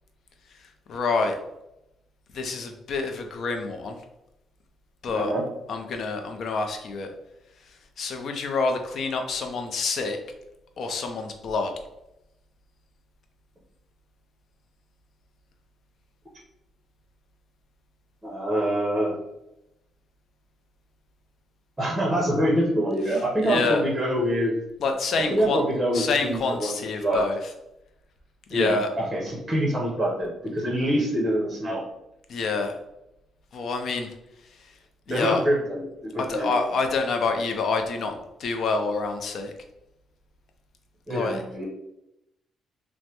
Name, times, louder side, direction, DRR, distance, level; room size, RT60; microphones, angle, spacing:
voice 1, 0.6-1.4 2.3-4.0 5.0-5.3 5.7-7.1 8.0-10.2 10.8-11.7 23.1-23.8 24.8-25.6 25.9-27.5 28.5-28.9 32.3-32.7 33.5-34.1 34.6-34.7 35.1-35.5 36.2-39.5 41.1-41.4, left 4 dB, 65° left, 5 dB, 0.4 m, -27 dB
voice 2, 5.1-5.4 18.2-19.1 21.8-24.5 25.3-27.2 28.5-31.8 35.1-35.8 36.3-36.5 41.1-41.7, equal, 15° right, -4 dB, 0.8 m, -25 dB
3.1 x 2.0 x 2.9 m, 0.87 s
cardioid pair, 90°, 0 cm